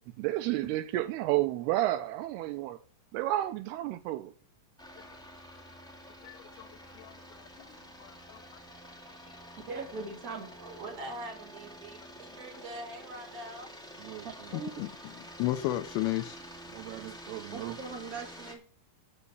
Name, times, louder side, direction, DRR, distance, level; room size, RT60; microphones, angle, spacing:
voice 1, 0.2-2.8 3.1-4.3 14.0-14.3 16.7-17.8, right 15 dB, 85° right, 2.7 m, -31 dB
sound 1, 4.8-18.5, equal, ahead, 1.3 m, -48 dB
voice 2, 6.2-6.7 7.0-8.4 14.5-14.9 15.4-16.4, left 15 dB, 80° left, 2.5 m, -34 dB
voice 3, 9.7-10.8 14.2-14.7 17.5-18.6, right 4 dB, 30° right, 2.1 m, -41 dB
voice 4, 10.7-13.7, right 1 dB, 50° right, 5.0 m, -43 dB
8.4 x 7.0 x 8.5 m
omnidirectional pair, 4.7 m